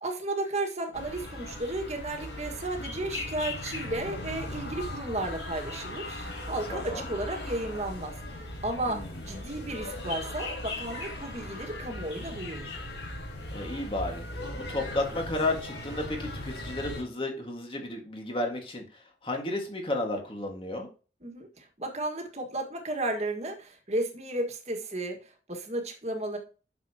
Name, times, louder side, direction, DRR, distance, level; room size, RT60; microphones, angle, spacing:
voice 1, 0.0-8.2 8.6-12.7 21.2-26.4, right 1 dB, 35° right, 3 dB, 1.8 m, -33 dB
sound 1, 0.9-17.0, left 1 dB, 90° left, 4.6 m, -38 dB
voice 2, 6.7-7.1 8.9-9.2 13.5-18.8 19.2-20.9, left 2 dB, 30° left, 2 dB, 1.9 m, -33 dB
9.0 x 6.8 x 2.9 m, 0.35 s
head